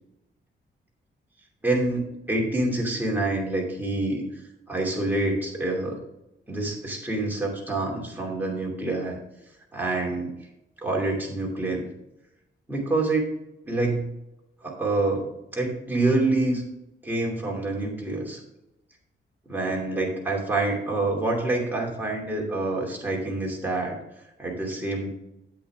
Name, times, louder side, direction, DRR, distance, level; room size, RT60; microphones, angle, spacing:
voice 1, 1.6-4.3 4.7-6.0 6.5-9.2 9.7-10.3 10.8-11.9 12.7-13.3 13.6-14.1 14.6-15.3 15.5-16.6 17.0-18.4 19.5-24.0 24.4-25.1, right 2 dB, 10° right, -2 dB, 2.6 m, -26 dB
8.4 x 8.3 x 3.5 m, 0.89 s
wide cardioid pair, 130°, 20 cm